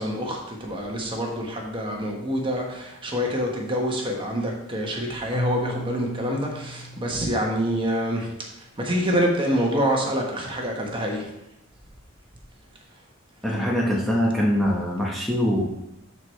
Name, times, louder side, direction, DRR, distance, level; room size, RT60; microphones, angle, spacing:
voice 1, 0.0-8.3 8.8-11.3, equal, 25° right, 0 dB, 1.3 m, -26 dB
Keyboard (musical), 5.3-8.3, equal, 40° left, 0.6 m, -35 dB
voice 2, 13.4-15.6, equal, ahead, -5 dB, 0.9 m, -23 dB
12.5 x 4.7 x 3.3 m, 0.84 s
head